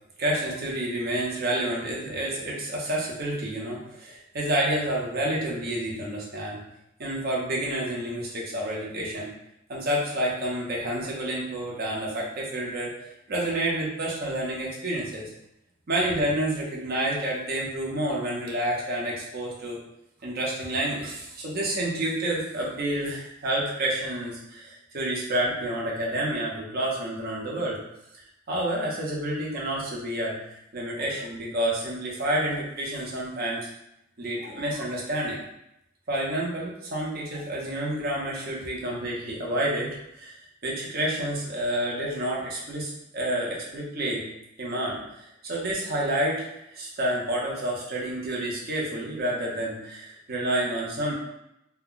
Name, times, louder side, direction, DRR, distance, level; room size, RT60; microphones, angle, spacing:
voice 1, 0.2-6.6 7.0-9.3 9.7-15.3 15.9-19.8 20.2-27.8 28.5-33.7 34.2-35.4 36.1-44.2 44.6-45.0 45.4-51.1, right 1 dB, 50° right, -3 dB, 0.7 m, -29 dB
2.2 x 2.1 x 3.7 m, 0.84 s
head